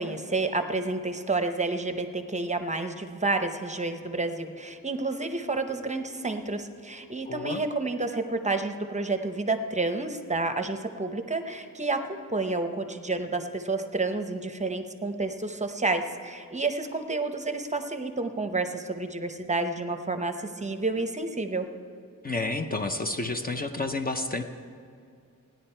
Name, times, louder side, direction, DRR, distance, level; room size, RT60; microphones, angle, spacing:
voice 1, 0.0-21.7, right 3 dB, 20° right, 7 dB, 0.8 m, -30 dB
voice 2, 7.3-7.6 22.2-24.4, left 2 dB, 25° left, 6 dB, 0.6 m, -30 dB
16.5 x 10.5 x 4.4 m, 2.4 s
wide cardioid pair, 110°, 33 cm